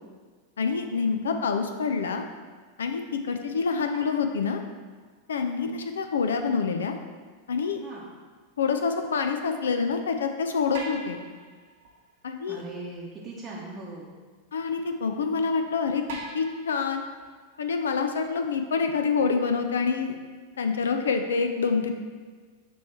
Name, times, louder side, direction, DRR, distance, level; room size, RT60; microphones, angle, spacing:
voice 1, 0.6-2.2 2.8-4.6 5.3-6.9 7.5-7.8 8.6-11.2 12.2-12.6 14.5-16.0 16.3-17.0 17.6-20.2 20.6-21.9, left 5 dB, 65° left, 6 dB, 0.4 m, -26 dB
sound 1, 3.1-3.2 3.9-5.1 8.0-8.1 10.7-13.6 14.1-14.2 15.2-15.3 16.1-18.9 19.4-19.5 20.5-20.6, right 2 dB, 55° right, 1.0 m, -44 dB
voice 2, 12.5-14.2, right 2 dB, 25° right, -6 dB, 0.9 m, -39 dB
6.8 x 3.1 x 4.5 m, 1.5 s
figure-of-eight pair, 90°, 0 cm